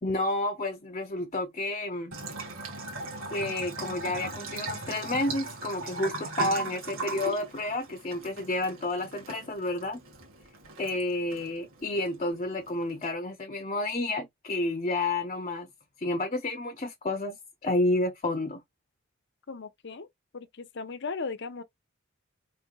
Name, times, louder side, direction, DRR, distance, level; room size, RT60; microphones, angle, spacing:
voice 1, 0.0-2.1 3.3-10.0 10.8-15.7 16.0-17.4 17.6-18.6, left 2 dB, 35° left, 0.8 m, -30 dB
Bathtub (filling or washing) / Trickle dribble, 2.1-13.1, right 2 dB, 80° right, 1.6 m, -38 dB
voice 2, 19.5-20.1 20.3-21.6, left 4 dB, 60° left, 0.7 m, -37 dB
4.7 x 3.4 x 2.3 m
head